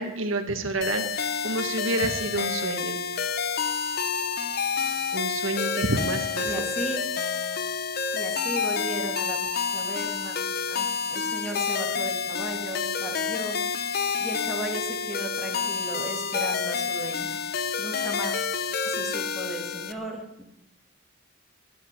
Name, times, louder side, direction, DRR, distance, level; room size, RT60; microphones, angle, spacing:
voice 1, 0.0-3.0 5.1-6.6, right 2 dB, 80° right, 6 dB, 1.7 m, -29 dB
sound 1, 0.8-19.9, left 5 dB, 50° left, 0.9 m, -29 dB
voice 2, 6.4-7.1 8.1-9.4 9.7-10.4 10.7-13.6 14.2-17.4 17.8-18.3 18.9-20.4, right 1 dB, ahead, 1 dB, 2.4 m, -36 dB
12.0 x 10.0 x 10.0 m, 0.88 s
head